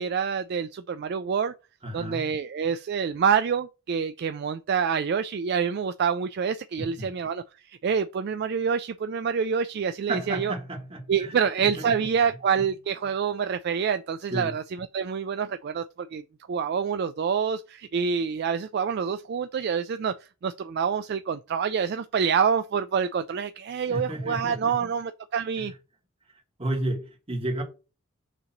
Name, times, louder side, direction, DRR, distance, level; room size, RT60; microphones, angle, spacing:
voice 1, 0.0-1.5 1.9-10.5 11.1-16.2 16.5-20.1 20.4-25.7, right 6 dB, 50° right, 0.3 m, -27 dB
voice 2, 1.8-2.3 6.8-7.2 10.1-11.9 14.3-14.5 23.9-24.9 25.6-25.7 26.6-27.6, right 1 dB, 25° right, 1.6 m, -32 dB
6.6 x 2.9 x 5.8 m
head